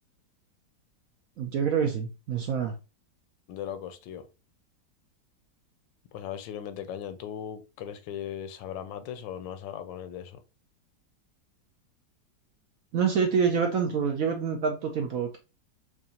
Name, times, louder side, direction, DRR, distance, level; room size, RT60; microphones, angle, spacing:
voice 1, 1.4-2.7 12.9-15.4, right 6 dB, 65° right, 0.8 m, -26 dB
voice 2, 3.5-4.3 6.1-10.4, left 9 dB, 85° left, 1.3 m, -38 dB
4.7 x 2.6 x 2.8 m
omnidirectional pair, 2.0 m